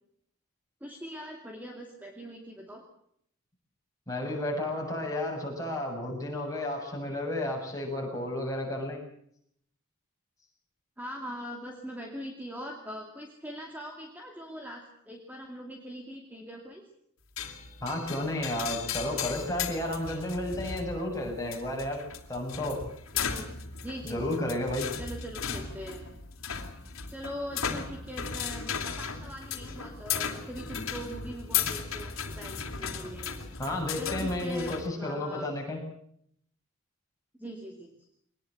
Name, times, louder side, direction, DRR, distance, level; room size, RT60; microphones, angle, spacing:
voice 1, 0.8-2.8 11.0-16.8 23.1-23.5 23.8-24.3 25.0-26.0 27.1-33.4 34.0-35.5 37.4-37.9, equal, 10° right, 1 dB, 2.5 m, -41 dB
voice 2, 4.1-9.0 17.8-22.0 22.3-22.8 24.1-24.9 33.6-35.8, left 1 dB, 15° left, -1 dB, 7.4 m, -32 dB
sound 1, 17.4-34.9, left 7 dB, 70° left, 3.0 m, -36 dB
23.0 x 20.0 x 7.9 m, 0.68 s
head